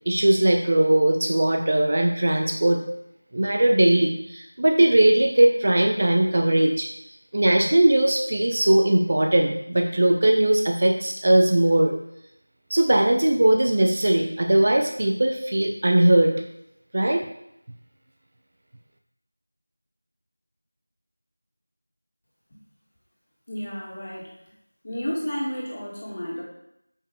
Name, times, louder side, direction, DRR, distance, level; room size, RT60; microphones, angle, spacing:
voice 1, 0.1-2.8 3.3-6.9 7.3-11.9 12.7-16.3 16.9-17.2, right 1 dB, 35° right, 3 dB, 0.7 m, -19 dB
voice 2, 23.5-24.3 24.8-26.4, equal, 30° left, -5 dB, 2.4 m, -31 dB
6.8 x 5.8 x 4.8 m, 0.80 s
figure-of-eight pair, 175°, 0 cm